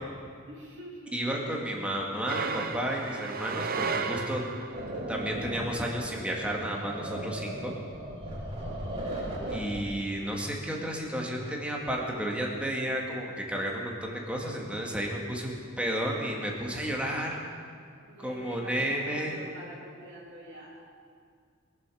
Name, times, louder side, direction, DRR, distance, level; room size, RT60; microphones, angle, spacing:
voice 1, 0.5-1.2 18.0-20.8, right 1 dB, 65° right, -7 dB, 3.1 m, -45 dB
voice 2, 1.1-4.4 5.1-7.7 9.5-17.4 18.2-19.4, equal, 5° right, -1 dB, 2.1 m, -32 dB
sound 1, 2.3-4.9, right 5 dB, 50° right, 0.8 m, -33 dB
sound 2, 4.7-9.9, right 1 dB, 30° right, 3.8 m, -37 dB
23.0 x 7.8 x 6.4 m, 2.2 s
head